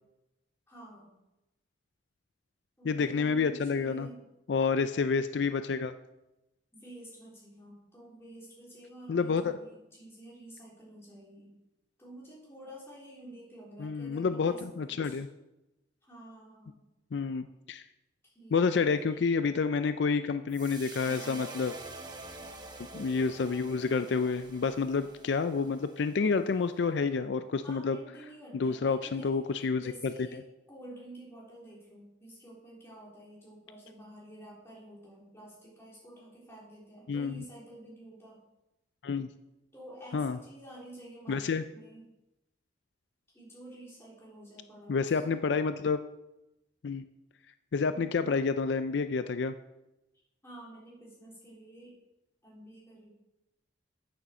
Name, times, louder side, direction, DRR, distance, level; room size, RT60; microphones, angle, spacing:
voice 1, 0.7-1.2 2.8-4.2 6.7-11.6 12.0-15.2 16.0-16.8 18.2-19.2 27.6-30.4 30.7-38.4 39.7-42.0 43.3-45.2 47.9-48.4 50.4-52.0 52.4-53.1, right 1 dB, 15° left, -5 dB, 3.7 m, -50 dB
voice 2, 2.9-4.1 4.5-5.9 9.1-9.5 13.8-15.3 17.1-17.8 18.5-21.7 22.8-28.0 28.5-30.1 37.1-37.4 39.0-39.3 40.1-40.4 41.3-41.6 44.9-46.0 46.8-47.0 47.7-49.5, left 5 dB, 70° left, 11 dB, 0.4 m, -29 dB
sound 1, 20.5-26.8, right 3 dB, 25° right, 1.0 m, -47 dB
8.7 x 6.9 x 6.5 m, 0.95 s
head